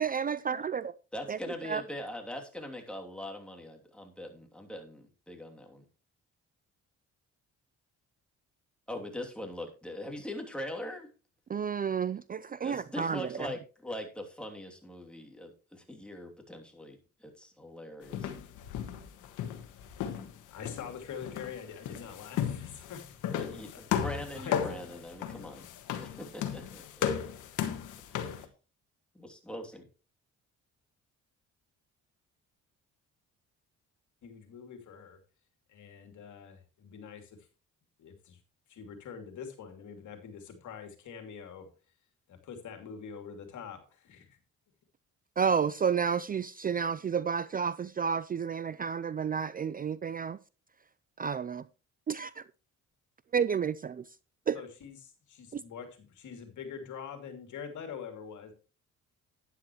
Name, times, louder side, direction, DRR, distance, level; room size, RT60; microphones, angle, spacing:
voice 1, 0.0-0.9 1.3-1.4 1.7-1.8 11.5-13.2 45.4-50.4 51.2-51.6 52.1-52.3 53.3-54.0 54.5-54.6 55.5-55.6, right 7 dB, 30° right, 0.4 m, -30 dB
voice 2, 1.1-5.8 8.9-11.1 12.6-18.3 23.3-25.7 26.0-27.1 28.1-28.3 29.1-29.9, left 1 dB, 5° left, 2.9 m, -42 dB
sound 1, 18.1-20.4 20.6-28.4, left 9 dB, 90° left, 1.5 m, -35 dB
voice 3, 20.5-23.1 23.7-24.6 34.2-35.2 35.7-37.4 38.0-38.4 38.7-41.7 42.3-44.4 54.5-58.5, left 7 dB, 75° left, 2.7 m, -45 dB
11.5 x 10.0 x 3.1 m
cardioid pair, 90°, 30 cm